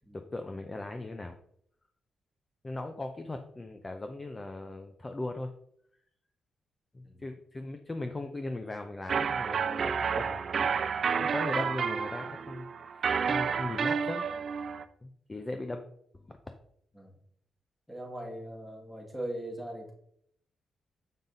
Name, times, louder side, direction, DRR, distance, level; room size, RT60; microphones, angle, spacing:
voice 1, 0.1-1.4 2.6-5.5 6.9-10.8 11.1-14.2 15.0-15.8 16.1-16.6, left 2 dB, 20° left, 6 dB, 0.6 m, -38 dB
sound 1, 9.1-14.8, right 6 dB, 50° right, 0.4 m, -30 dB
voice 2, 17.9-19.9, right 1 dB, 5° left, -1 dB, 2.1 m, -40 dB
7.3 x 5.2 x 4.0 m, 0.69 s
cardioid pair, 120°, 0 cm